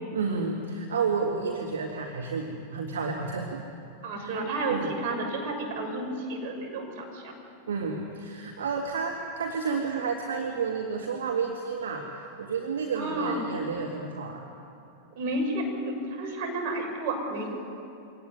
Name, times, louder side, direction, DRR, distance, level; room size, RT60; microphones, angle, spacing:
voice 1, 0.1-3.6 4.2-4.4 4.7-4.9 7.7-14.5, right 5 dB, 65° right, 1 dB, 2.1 m, -31 dB
voice 2, 4.0-7.3 12.9-13.4 15.1-17.5, right 2 dB, 45° right, 1 dB, 6.6 m, -31 dB
24.0 x 18.5 x 9.6 m, 2.8 s
figure-of-eight pair, 90°, 0 cm